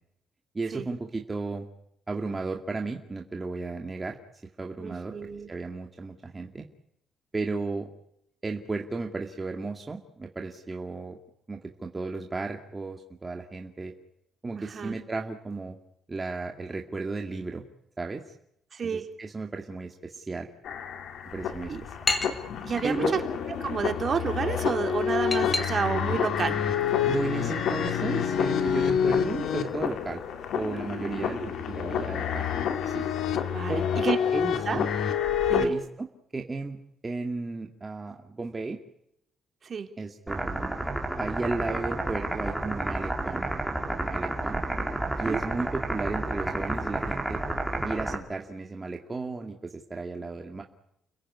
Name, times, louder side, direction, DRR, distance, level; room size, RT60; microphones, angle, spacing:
voice 1, 0.5-1.7 2.1-4.2 4.6-5.2 5.5-6.6 7.3-7.9 8.4-11.2 11.5-13.9 14.4-15.8 16.1-17.6 18.0-18.2 18.8-20.5 21.3-21.9 22.8-23.2 27.1-30.2 30.5-32.5 32.9-33.0 33.7-34.1 34.3-34.9 35.6-36.1 36.3-36.8 37.0-38.8 40.0-40.9 41.2-43.5 44.0-44.6 45.2-47.4 47.8-50.6, right 3 dB, 20° right, 2 dB, 2.2 m, -34 dB
voice 2, 4.8-5.5 14.6-15.0 18.7-19.0 21.7-21.8 22.6-23.2 23.6-26.6 31.0-31.5 33.5-34.2 34.7-34.8 35.5-35.7 39.6-39.9 44.7-45.0 45.3-45.4, right 6 dB, 45° right, 5 dB, 3.6 m, -30 dB
sound 1, 20.6-35.7, left 8 dB, 70° left, 2.8 m, -28 dB
sound 2, 21.2-31.2, left 2 dB, 25° left, 3.9 m, -38 dB
sound 3, 40.3-48.2, right 2 dB, 5° right, 4.4 m, -31 dB
30.0 x 17.0 x 9.8 m, 0.78 s
cardioid pair, 125°, 0 cm